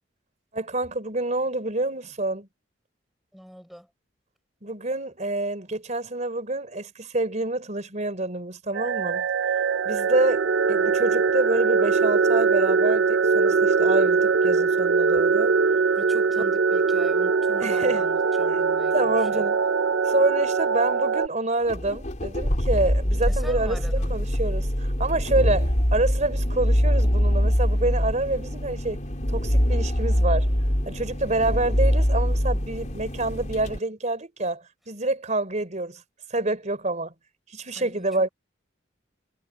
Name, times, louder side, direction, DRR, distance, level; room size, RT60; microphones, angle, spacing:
voice 1, 0.5-2.5 4.6-9.3 9.8-15.5 17.6-18.1 18.5-18.6 18.9-19.6 20.1-23.8 24.1-29.0 29.3-30.5 30.8-36.0 36.3-37.1 37.5-38.3, right 2 dB, 40° right, 4.1 m, -27 dB
voice 2, 3.3-3.9 16.0-19.5 23.3-24.2 37.7-38.3, equal, ahead, 6.1 m, -43 dB
sound 1, 8.7-21.3, right 5 dB, 70° right, 0.7 m, -22 dB
sound 2, 21.7-33.8, equal, 40° left, 4.2 m, -24 dB
head